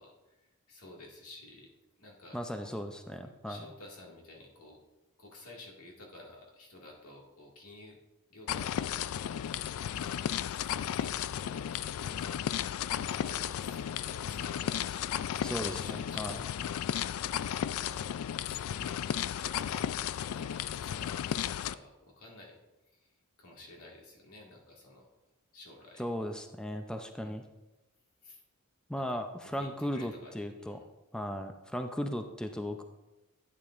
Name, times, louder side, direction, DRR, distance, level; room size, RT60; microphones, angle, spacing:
voice 1, 0.0-1.7 2.0-2.7 3.5-4.8 5.2-8.0 8.3-9.4 9.8-10.2 10.9-12.2 13.1-16.7 17.6-18.1 18.4-19.0 19.3-22.6 22.9-25.1 25.5-26.0 27.2-27.4 28.2-28.4 28.9-29.1 29.4-30.8, left 2 dB, 85° left, -1 dB, 2.0 m, -52 dB
voice 2, 2.3-3.6 15.4-16.5 26.0-27.4 28.9-30.8 31.1-32.8, equal, 5° left, 6 dB, 0.5 m, -37 dB
sound 1, 8.5-21.7, left 9 dB, 70° left, 0.3 m, -34 dB
11.5 x 8.9 x 2.5 m, 1.1 s
head